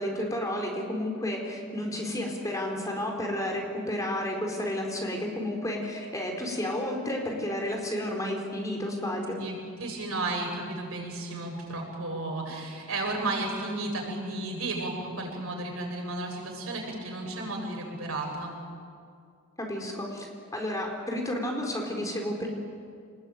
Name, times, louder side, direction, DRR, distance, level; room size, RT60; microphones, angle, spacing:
voice 1, 0.0-9.4 19.6-20.3 20.5-22.5, left 1 dB, 15° left, 1 dB, 4.5 m, -31 dB
voice 2, 9.4-18.5, right 2 dB, 90° right, 0 dB, 7.7 m, -33 dB
26.5 x 20.5 x 9.2 m, 2.2 s
head